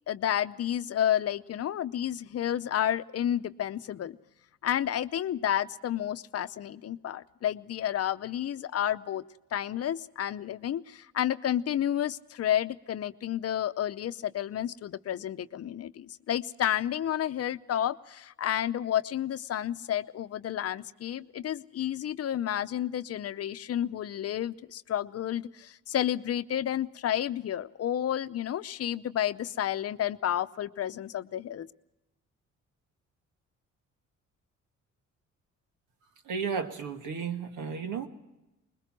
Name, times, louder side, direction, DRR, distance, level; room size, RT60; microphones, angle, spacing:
voice 1, 0.1-4.2 4.6-9.2 9.5-31.7, left 10 dB, 55° left, 13 dB, 0.7 m, -31 dB
voice 2, 36.2-38.1, right 6 dB, 85° right, 6 dB, 1.9 m, -33 dB
21.0 x 20.5 x 6.1 m, 0.97 s
cardioid pair, 90°, 30 cm